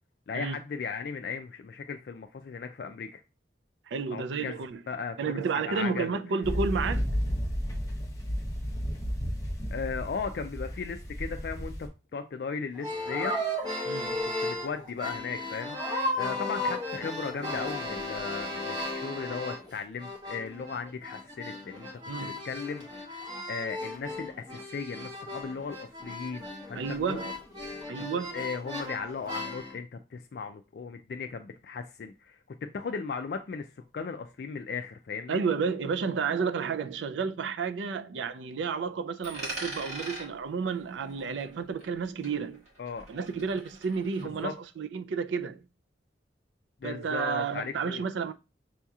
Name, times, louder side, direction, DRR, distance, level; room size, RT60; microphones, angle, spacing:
voice 1, 0.3-3.2 4.1-4.5 4.9-5.4 5.7-6.2 9.7-13.3 14.1-15.8 16.1-21.9 22.2-27.2 28.1-32.4 32.7-33.7 33.9-35.4 42.8-43.1 44.4-44.5 46.8-48.0, left 5 dB, 60° left, 0.3 m, -37 dB
voice 2, 3.9-4.8 5.2-7.0 13.8-14.3 22.1-22.4 26.7-27.3 27.9-28.4 35.3-42.6 43.1-45.7 46.8-48.3, right 5 dB, 85° right, 0.4 m, -31 dB
sound 1, 6.4-11.9, equal, 20° left, 0.7 m, -32 dB
sound 2, 12.7-19.7 20.0-29.7, left 1 dB, 25° right, 1.1 m, -35 dB
Coin (dropping), 39.2-42.0 42.2-44.2, right 2 dB, 40° right, 1.6 m, -42 dB
6.2 x 2.8 x 2.3 m
head